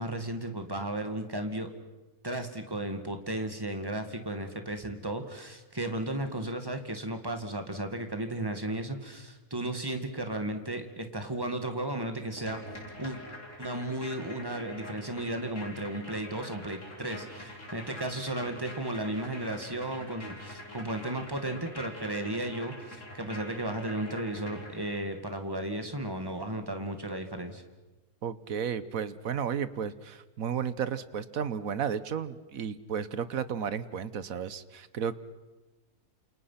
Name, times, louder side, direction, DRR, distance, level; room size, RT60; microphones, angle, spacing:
voice 1, 0.0-1.7 2.2-12.6 13.0-13.2 13.6-27.6, right 1 dB, 15° right, 6 dB, 2.2 m, -34 dB
sound 1, 12.4-25.2, left 1 dB, 50° left, 5.4 m, -45 dB
voice 2, 28.2-35.1, right 7 dB, 65° right, 15 dB, 1.4 m, -33 dB
28.5 x 28.0 x 5.9 m, 1.1 s
omnidirectional pair, 1.7 m